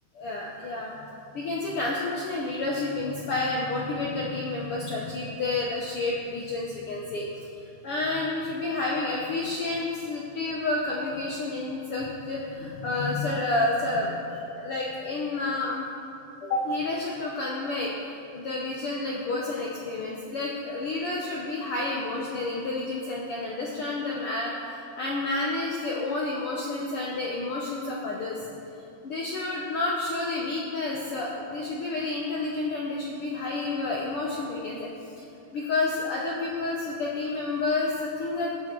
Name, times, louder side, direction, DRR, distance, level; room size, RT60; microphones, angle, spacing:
voice 1, 0.2-1.0 1.3-15.9 16.4-28.5 29.0-35.1 35.5-38.7, left 2 dB, 70° left, -3 dB, 1.3 m, -30 dB
15.5 x 8.9 x 3.8 m, 2.7 s
omnidirectional pair, 3.7 m